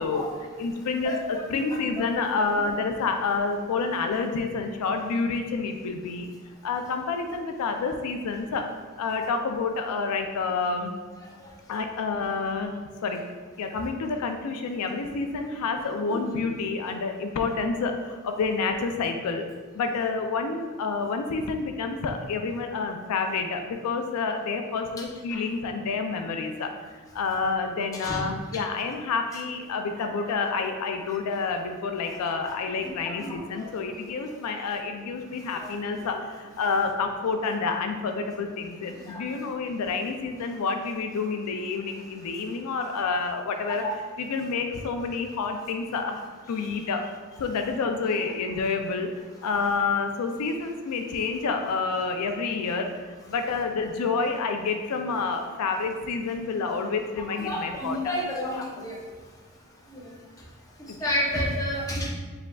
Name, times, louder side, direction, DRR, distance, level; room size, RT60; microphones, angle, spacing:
voice 1, 0.0-6.3 6.6-8.7 9.0-11.0 11.7-13.2 13.6-19.5 19.7-47.1 47.4-49.1 49.4-58.1 60.9-61.1, left 4 dB, 85° left, 5 dB, 0.4 m, -29 dB
voice 2, 33.2-33.6 35.6-36.1 39.1-39.2 43.8-43.9 57.4-59.0 59.9-60.0 61.0-62.1, equal, 15° left, -3 dB, 0.7 m, -30 dB
4.8 x 3.4 x 2.3 m, 1.4 s
head